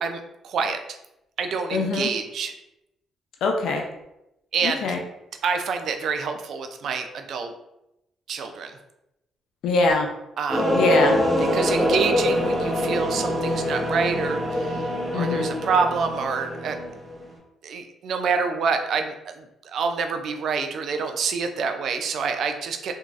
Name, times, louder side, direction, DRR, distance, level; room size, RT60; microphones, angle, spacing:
voice 1, 0.0-1.0 1.4-2.5 4.5-4.9 5.4-7.5 8.3-8.8 10.4-10.8 11.5-16.8 17.6-22.9, right 5 dB, 70° right, 6 dB, 0.3 m, -27 dB
voice 2, 1.7-2.1 3.4-3.8 4.6-5.0 9.6-10.1 10.7-11.2 15.1-15.6, left 3 dB, 80° left, 3 dB, 0.5 m, -23 dB
sound 1, 10.5-17.1, equal, 10° left, 1.0 m, -24 dB
2.9 x 2.7 x 2.4 m, 0.88 s
cardioid pair, 90°, 0 cm